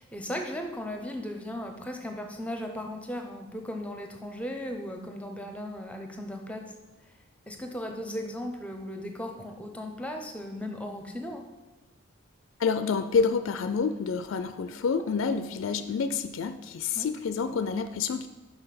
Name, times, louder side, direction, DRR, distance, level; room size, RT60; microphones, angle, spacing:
voice 1, 0.0-6.6 7.5-11.4 16.9-17.1, left 1 dB, 5° left, 4 dB, 0.6 m, -36 dB
voice 2, 12.6-18.3, left 5 dB, 65° left, 10 dB, 0.3 m, -28 dB
5.9 x 5.6 x 5.8 m, 1.1 s
head